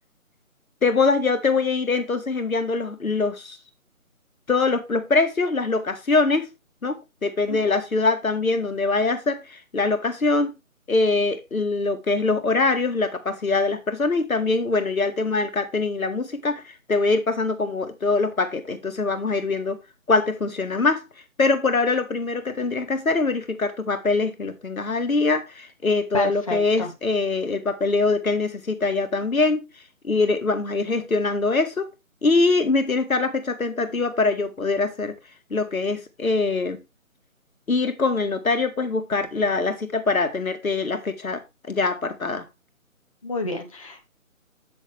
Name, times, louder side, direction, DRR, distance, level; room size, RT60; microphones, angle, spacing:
voice 1, 0.8-3.6 4.5-6.5 6.8-10.5 10.9-19.8 20.1-21.0 21.4-29.6 30.0-31.9 32.2-35.1 35.5-36.8 37.7-41.4 41.7-42.5, left 3 dB, 75° left, 1.7 m, -23 dB
voice 2, 26.1-26.9 43.2-44.1, left 2 dB, 25° left, 0.7 m, -29 dB
8.1 x 6.2 x 3.4 m
figure-of-eight pair, 160°, 42 cm